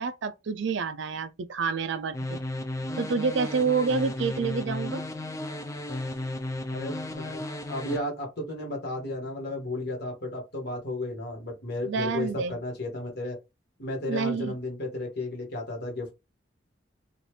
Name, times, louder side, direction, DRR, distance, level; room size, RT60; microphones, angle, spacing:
voice 1, 0.0-2.4 3.0-5.0 11.9-12.5 14.1-14.5, right 5 dB, 60° right, 0.4 m, -28 dB
sound 1, 2.1-8.0, left 1 dB, 15° left, 0.4 m, -34 dB
voice 2, 6.7-7.4 7.7-13.4 13.8-16.1, left 1 dB, 55° left, 1.6 m, -33 dB
4.0 x 2.5 x 3.2 m
head